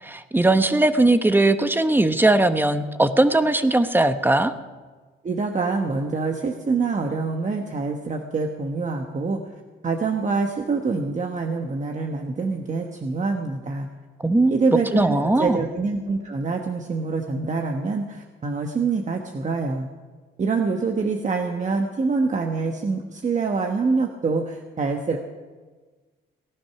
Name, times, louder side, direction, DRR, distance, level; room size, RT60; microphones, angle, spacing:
voice 1, 0.0-4.5 14.2-14.6 14.9-15.6, right 2 dB, 10° right, 10 dB, 1.1 m, -19 dB
voice 2, 5.2-9.4 9.8-13.9 14.5-19.9 20.4-25.2, right 4 dB, 40° right, 3 dB, 1.4 m, -25 dB
18.5 x 11.5 x 5.9 m, 1.4 s
cardioid pair, 90°, 20 cm